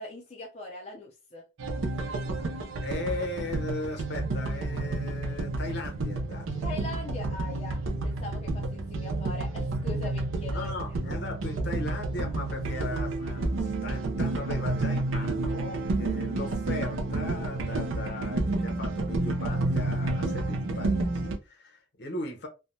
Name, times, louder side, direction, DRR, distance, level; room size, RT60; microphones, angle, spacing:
voice 1, 0.0-1.4 6.6-10.7, left 2 dB, 30° left, 0.4 m, -40 dB
sound 1, 1.6-21.4, right 2 dB, 75° right, 0.6 m, -30 dB
voice 2, 2.8-6.6 10.5-22.5, left 2 dB, 55° left, 0.8 m, -38 dB
3.3 x 2.2 x 2.6 m
head